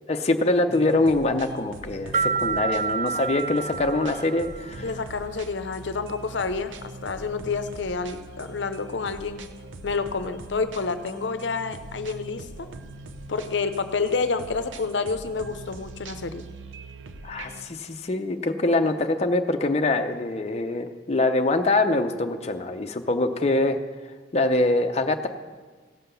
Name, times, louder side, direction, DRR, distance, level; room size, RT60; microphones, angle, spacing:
voice 1, 0.1-4.9 17.2-23.8 24.0-25.3, left 2 dB, 35° left, 5 dB, 0.6 m, -24 dB
sound 1, 0.7-17.7, right 2 dB, 90° right, 0.7 m, -42 dB
sound 2, 2.1-4.8, right 5 dB, 40° right, 0.4 m, -28 dB
voice 2, 4.8-9.5 9.8-12.7 13.3-16.4, left 4 dB, 70° left, 11 dB, 0.7 m, -29 dB
16.0 x 5.7 x 6.9 m, 1.4 s
head